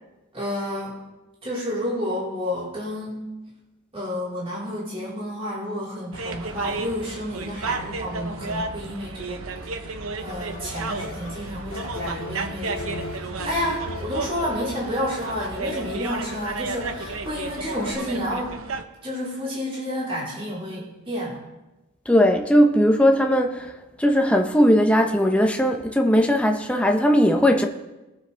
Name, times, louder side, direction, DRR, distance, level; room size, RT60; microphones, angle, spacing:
voice 1, 0.3-1.0 1.4-3.3 3.9-9.4 9.7-18.6 19.0-21.4, equal, 25° right, -7 dB, 4.4 m, -30 dB
sound 1, 6.1-18.8, right 3 dB, 75° right, 0.9 m, -33 dB
sound 2, 10.3-18.0, left 4 dB, 70° left, 2.5 m, -40 dB
voice 2, 22.1-27.7, equal, 5° left, 3 dB, 0.9 m, -19 dB
21.5 x 7.5 x 3.5 m, 1.0 s
head